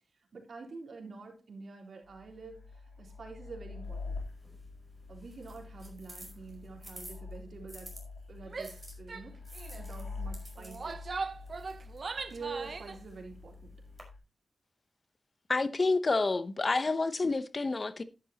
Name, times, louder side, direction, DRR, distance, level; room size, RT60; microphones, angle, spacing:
voice 1, 0.3-4.2 5.1-8.0 8.3-9.4 9.8-11.0 12.3-13.7, right 4 dB, 75° right, 3.5 m, -47 dB
sound 1, 2.0-14.2, left 3 dB, 75° left, 3.3 m, -46 dB
sound 2, 3.8-8.0 8.6-14.0, right 1 dB, 10° right, 5.1 m, -53 dB
Female speech woman speaking / Yell, 8.5-8.8 9.1-9.3 9.5-9.9 10.6-13.0, right 4 dB, 55° right, 0.8 m, -39 dB
voice 2, 15.5-18.0, left 3 dB, 40° left, 0.9 m, -28 dB
11.0 x 11.0 x 2.9 m
wide cardioid pair, 90°, 0 cm